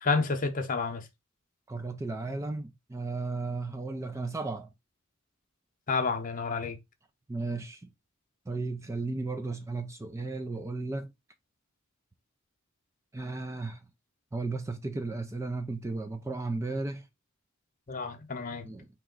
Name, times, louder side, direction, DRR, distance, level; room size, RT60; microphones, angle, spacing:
voice 1, 0.0-1.1 5.9-6.8 17.9-18.7, left 4 dB, 40° left, 0.7 m, -30 dB
voice 2, 1.7-4.7 7.3-7.9 8.5-11.1 13.1-13.8 14.3-17.1 18.6-18.9, right 3 dB, 15° right, 0.4 m, -34 dB
4.8 x 2.9 x 3.8 m
head